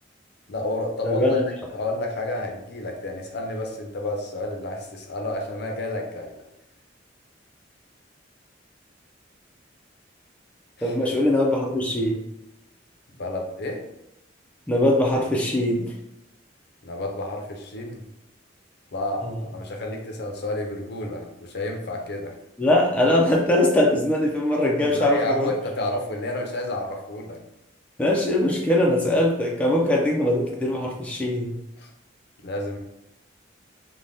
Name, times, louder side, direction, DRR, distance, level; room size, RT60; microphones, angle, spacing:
voice 1, 0.5-1.4 1.7-6.4 10.8-11.0 13.2-13.8 16.8-18.1 18.9-22.4 24.9-27.4 31.8-31.9 32.4-32.8, left 1 dB, 60° left, 2 dB, 0.5 m, -30 dB
voice 2, 1.0-1.4 10.8-12.2 14.7-15.9 19.2-19.4 22.6-25.5 28.0-31.5, left 1 dB, 5° left, -2 dB, 0.3 m, -21 dB
3.4 x 2.1 x 2.6 m, 0.85 s
head